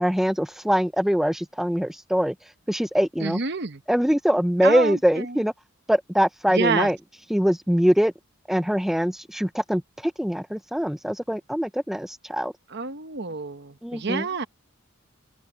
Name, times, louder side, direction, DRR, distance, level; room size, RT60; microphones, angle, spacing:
voice 1, 0.0-2.3 2.7-3.4 3.9-5.5 5.9-7.0 7.3-8.1 8.5-12.5 13.8-14.2, equal, ahead, 0.4 m, -23 dB
voice 2, 3.2-3.8 4.6-5.4 6.5-6.9 12.7-14.5, right 4 dB, 50° right, 1.0 m, -28 dB
head